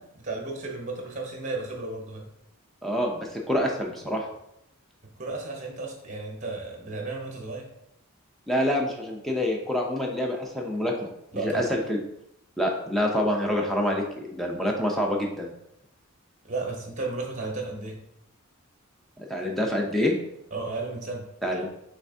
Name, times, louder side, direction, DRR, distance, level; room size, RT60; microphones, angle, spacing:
voice 1, 0.2-2.3 5.0-7.7 11.3-11.7 16.4-18.0 20.5-21.3, right 3 dB, 35° right, 1 dB, 0.9 m, -34 dB
voice 2, 2.8-4.3 8.5-11.1 11.4-12.0 12.6-15.5 19.2-20.2 21.4-21.7, left 1 dB, ahead, 0 dB, 0.6 m, -26 dB
5.6 x 3.4 x 2.7 m, 0.79 s
head